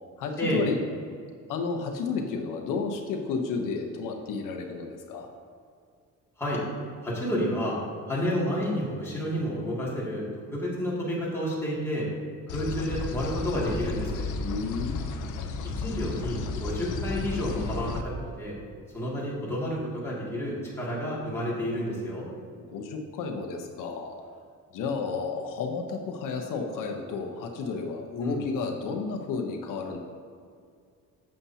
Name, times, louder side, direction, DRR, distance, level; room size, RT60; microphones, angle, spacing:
voice 1, 0.2-0.8 1.5-5.3 14.4-15.1 22.6-24.2 24.7-30.0, left 4 dB, 90° left, 3 dB, 1.0 m, -32 dB
voice 2, 7.0-7.8 8.1-10.2 10.5-12.1 12.5-14.2 15.6-18.5 18.9-22.2 28.2-28.4, equal, 10° left, -7 dB, 2.3 m, -30 dB
sound 1, 12.5-18.0, left 4 dB, 70° left, 0.8 m, -33 dB
11.0 x 7.7 x 2.8 m, 2.2 s
cardioid pair, 150°, 31 cm